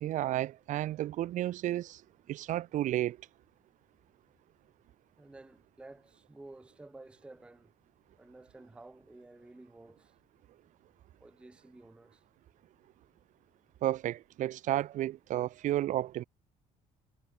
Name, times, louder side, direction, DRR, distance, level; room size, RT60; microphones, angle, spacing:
voice 1, 0.0-2.0 2.3-3.2 13.8-16.2, right 13 dB, 55° right, 0.6 m, -32 dB
voice 2, 5.2-7.7 8.2-10.1 11.2-12.2, right 2 dB, 5° right, 0.5 m, -52 dB
cardioid pair, 125°, 15 cm